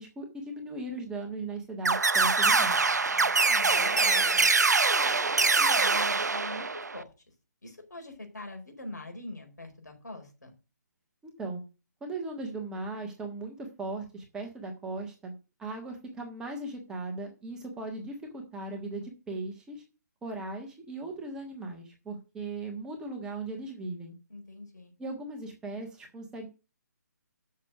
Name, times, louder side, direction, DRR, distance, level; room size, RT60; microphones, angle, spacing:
voice 1, 0.0-2.8 11.2-11.6 12.0-15.3 15.6-19.8 20.2-24.1 25.0-26.5, right 2 dB, 5° right, 1 dB, 1.4 m, -38 dB
sound 1, 1.8-7.0, right 4 dB, 70° right, 0.6 m, -24 dB
voice 2, 3.1-4.5 5.0-7.1 7.6-10.5 24.3-24.9, left 2 dB, 75° left, 3 dB, 4.6 m, -43 dB
7.5 x 6.4 x 7.7 m, 0.31 s
figure-of-eight pair, 140°, 10 cm